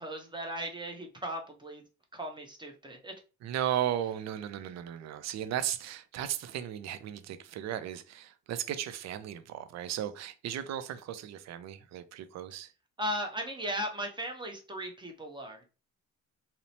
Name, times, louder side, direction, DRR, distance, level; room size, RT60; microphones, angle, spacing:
voice 1, 0.0-1.8 2.1-3.1 13.0-15.7, equal, 15° right, 0.7 m, -37 dB
voice 2, 3.4-12.7, right 11 dB, 65° right, 0.4 m, -35 dB
2.8 x 2.0 x 2.7 m
cardioid pair, 90°, 30 cm